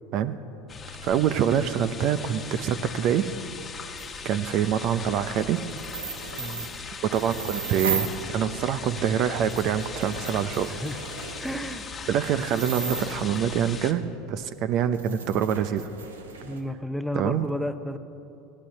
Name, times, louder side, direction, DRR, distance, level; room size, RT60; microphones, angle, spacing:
sound 1, 0.7-13.9, left 5 dB, 25° left, 1.2 m, -39 dB
voice 1, 1.0-3.3 4.2-5.6 7.1-10.7 12.1-14.0 14.3-15.9 17.1-17.5, right 9 dB, 55° right, 12 dB, 0.6 m, -25 dB
sound 2, 4.0-4.1 5.7-8.2 8.9-9.0 9.4-13.5 14.4-14.5 14.9-16.6, right 5 dB, 90° right, 1.2 m, -36 dB
voice 2, 6.4-6.7 10.6-11.0 11.4-11.9 16.4-18.0, equal, ahead, 10 dB, 0.8 m, -32 dB
15.5 x 11.5 x 6.4 m, 2.8 s
hypercardioid pair, 85°, 0 cm